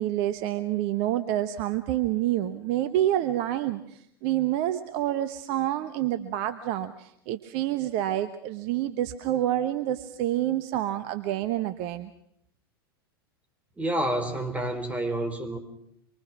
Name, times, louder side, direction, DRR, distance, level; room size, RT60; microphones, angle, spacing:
voice 1, 0.0-3.8 4.2-12.1, right 13 dB, 50° right, 11 dB, 1.2 m, -28 dB
voice 2, 13.8-15.6, right 1 dB, 10° right, 7 dB, 4.3 m, -29 dB
26.0 x 24.0 x 6.1 m, 0.73 s
figure-of-eight pair, 90°, 13 cm